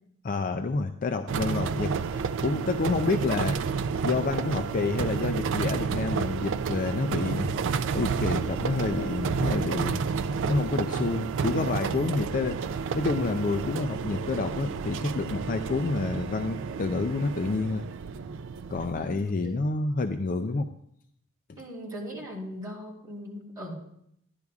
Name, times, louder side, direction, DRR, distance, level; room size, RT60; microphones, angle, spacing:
voice 1, 0.2-3.6 4.0-7.5 7.9-10.0 10.5-17.8 18.7-20.7 21.5-21.6, left 3 dB, 40° left, 7 dB, 0.4 m, -29 dB
sound 1, 1.3-19.0, right 5 dB, 60° right, 0.4 m, -30 dB
voice 2, 21.6-23.7, equal, 15° right, -5 dB, 3.4 m, -39 dB
14.0 x 10.5 x 2.4 m, 0.73 s
head